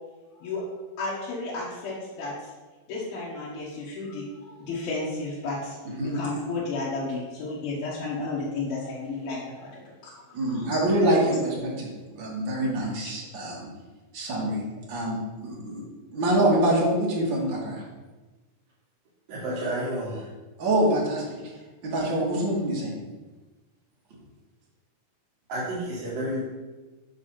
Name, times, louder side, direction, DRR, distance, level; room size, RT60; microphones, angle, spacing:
voice 1, 1.0-2.5 2.9-5.8 6.0-10.8 12.5-13.1, left 3 dB, 80° left, -8 dB, 3.1 m, -33 dB
voice 2, 10.3-13.7 14.1-14.6 14.9-15.8 16.1-17.8 20.6-21.4 21.8-23.0, right 1 dB, 45° right, -3 dB, 1.6 m, -25 dB
voice 3, 19.3-20.3 25.5-26.4, right 1 dB, 70° right, -10 dB, 3.1 m, -30 dB
8.0 x 3.4 x 5.8 m, 1.2 s
omnidirectional pair, 4.2 m